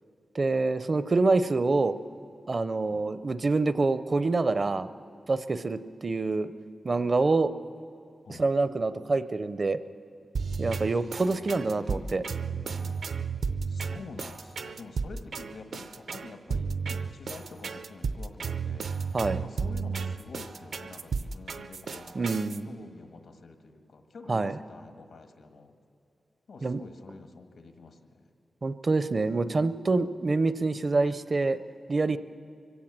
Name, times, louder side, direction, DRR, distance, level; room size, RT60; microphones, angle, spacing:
voice 1, 0.3-2.0 2.5-4.9 5.3-6.5 6.8-7.5 8.4-9.8 10.6-12.2 19.1-19.4 22.1-22.7 24.3-24.5 26.6-26.8 28.6-31.6 31.9-32.2, right 3 dB, 35° right, 13 dB, 0.5 m, -26 dB
sound 1, 10.3-22.6, right 5 dB, 75° right, 0.6 m, -33 dB
voice 2, 11.2-13.0 13.7-25.7 26.5-28.3, left 3 dB, 85° left, 6 dB, 1.6 m, -47 dB
24.0 x 16.5 x 7.4 m, 2.5 s
wide cardioid pair, 175°, 0 cm